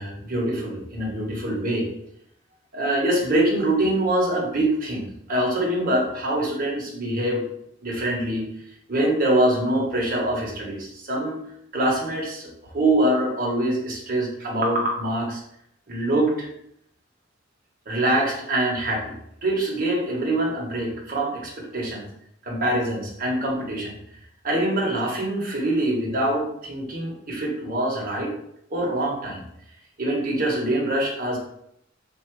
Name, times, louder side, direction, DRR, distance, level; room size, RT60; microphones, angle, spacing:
voice 1, 0.0-1.9 2.7-7.4 7.8-8.4 8.9-11.4 11.7-12.5 12.7-15.4 15.9-16.5 17.9-19.1 19.4-22.0 22.4-24.0 24.4-28.3 28.7-29.4 30.0-31.4, right 1 dB, 45° right, -3 dB, 1.3 m, -24 dB
3.8 x 2.9 x 4.7 m, 0.75 s
head